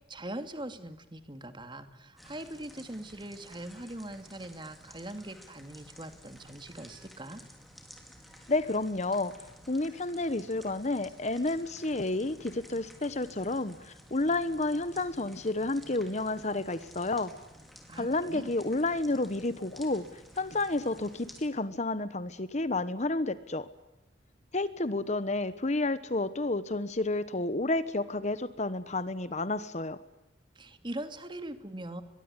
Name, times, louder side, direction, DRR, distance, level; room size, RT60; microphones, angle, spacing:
voice 1, 0.0-7.4 17.9-18.5 30.6-32.0, right 1 dB, 25° right, 9 dB, 2.5 m, -41 dB
sound 1, 2.2-21.5, equal, ahead, 4.8 m, -53 dB
voice 2, 8.5-9.3 9.7-17.3 18.0-23.7 24.5-30.0, left 2 dB, 40° left, 14 dB, 1.2 m, -30 dB
23.0 x 23.0 x 9.9 m, 0.94 s
head